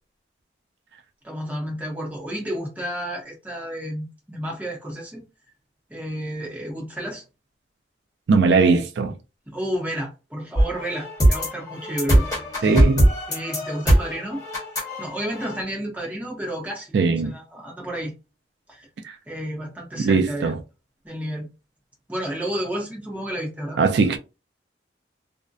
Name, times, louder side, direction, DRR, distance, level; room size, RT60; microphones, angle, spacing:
voice 1, 1.2-5.2 5.9-7.2 9.5-12.3 12.6-12.8 13.3-14.4 15.0-18.1 18.7-18.9 19.3-20.5 21.0-21.5 22.1-23.8, equal, 10° right, 0.7 m, -31 dB
voice 2, 8.3-9.1 12.6-13.1 16.9-17.3 19.0-19.1 20.0-20.6 23.8-24.2, right 4 dB, 65° right, 0.3 m, -19 dB
sound 1, 10.5-15.6, right 1 dB, 20° left, 1.0 m, -20 dB
2.6 x 2.1 x 2.3 m
head